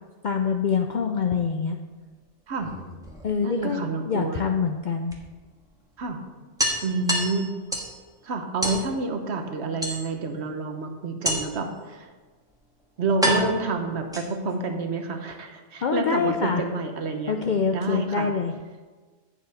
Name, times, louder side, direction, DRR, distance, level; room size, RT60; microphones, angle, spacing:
voice 1, 0.2-1.8 3.2-5.2 15.8-16.6 17.3-18.5, left 6 dB, 60° left, 4 dB, 0.5 m, -25 dB
sound 1, 2.5-3.6 5.1-5.2 5.6-5.7 6.0-6.1 6.6-8.0 8.6-8.9 9.8-10.4 11.2-11.7 12.5-12.6 13.2-14.6, equal, 5° right, 1.2 m, -28 dB
voice 2, 3.4-4.4 6.0-6.2 6.8-7.5 8.2-12.1 13.0-17.4 17.7-18.3, right 3 dB, 65° right, 5 dB, 1.1 m, -28 dB
8.6 x 7.2 x 4.1 m, 1.4 s
omnidirectional pair, 1.2 m